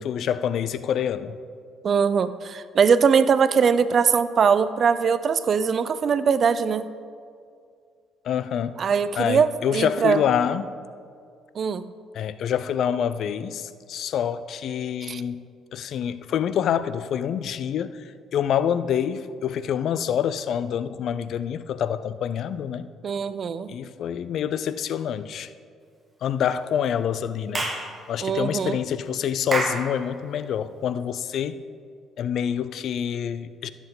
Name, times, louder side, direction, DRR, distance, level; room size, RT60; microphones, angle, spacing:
voice 1, 0.0-1.4 8.2-8.8 9.2-10.6 12.1-15.4 15.7-22.9 23.7-25.5 26.2-31.6 32.2-33.7, left 9 dB, 65° left, 14 dB, 0.4 m, -26 dB
voice 2, 1.8-6.9 8.8-10.2 11.6-11.9 15.0-15.2 23.0-23.7 28.2-28.8, right 6 dB, 50° right, 14 dB, 0.5 m, -21 dB
Clapping / Chirp tweet, 27.5-27.9 29.5-29.9, right 2 dB, 25° right, 1.6 m, -26 dB
14.5 x 7.2 x 3.9 m, 2.2 s
supercardioid pair, 60°, 0 cm